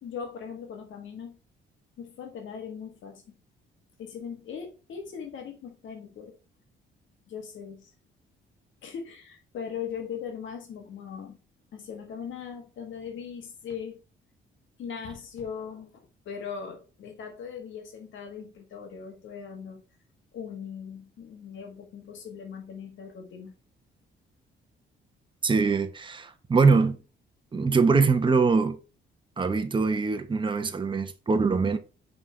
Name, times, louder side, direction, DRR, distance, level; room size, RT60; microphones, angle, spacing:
voice 1, 0.0-1.4 2.0-3.2 4.0-6.3 7.3-7.9 8.8-11.4 11.7-14.0 14.8-19.8 20.3-23.5, left 7 dB, 75° left, 1.6 m, -39 dB
voice 2, 25.4-27.0 27.5-28.8 29.4-31.8, right 4 dB, 25° right, 0.9 m, -23 dB
5.6 x 4.0 x 4.3 m
cardioid pair, 90°, 20 cm